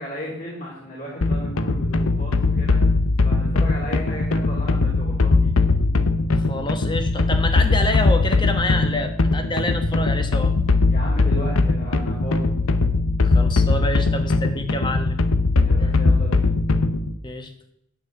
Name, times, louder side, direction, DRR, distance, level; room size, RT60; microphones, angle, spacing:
voice 1, 0.0-2.8 3.2-5.5 10.9-12.5 15.6-16.5, left 1 dB, 40° left, -4 dB, 2.6 m, -35 dB
sound 1, 1.2-17.1, left 3 dB, 80° left, 0.8 m, -20 dB
voice 2, 6.3-10.5 13.2-15.2 15.8-15.9 17.2-17.5, left 2 dB, 20° left, 6 dB, 1.1 m, -27 dB
9.2 x 7.3 x 8.2 m, 0.78 s
head